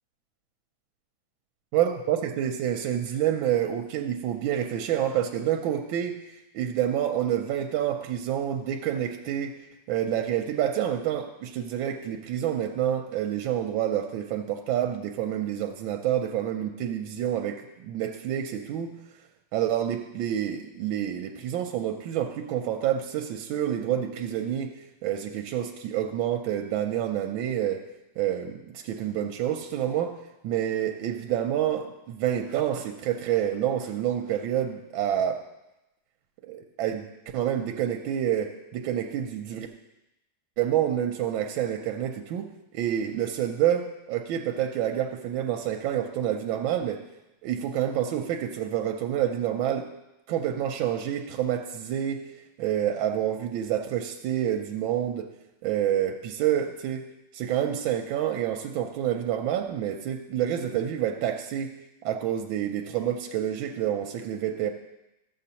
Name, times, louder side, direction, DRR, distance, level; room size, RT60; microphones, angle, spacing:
voice 1, 1.7-6.2 6.5-9.6 9.9-19.0 19.5-24.7 25.0-27.8 28.2-30.2 30.4-35.4 36.5-37.1 37.3-39.7 40.6-47.0 47.4-49.9 50.3-52.2 52.6-55.3 55.6-61.7 62.0-64.7, right 10 dB, 90° right, 5 dB, 1.4 m, -28 dB
13.0 x 7.6 x 2.9 m, 0.93 s
omnidirectional pair, 2.1 m